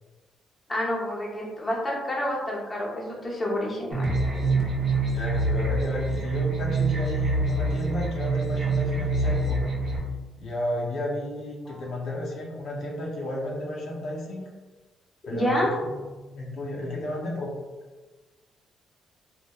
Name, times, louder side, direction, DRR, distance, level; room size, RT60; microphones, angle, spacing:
voice 1, 0.7-4.1 11.7-11.8 15.3-15.7, left 1 dB, 20° left, -4 dB, 0.6 m, -28 dB
sound 1, 3.9-10.0, right 2 dB, 45° right, 0.6 m, -25 dB
voice 2, 5.1-9.6 10.4-14.5 15.3-16.0 16.3-17.5, left 1 dB, 65° left, -4 dB, 0.6 m, -32 dB
2.9 x 2.0 x 2.2 m, 1.3 s
cardioid pair, 100°, 0 cm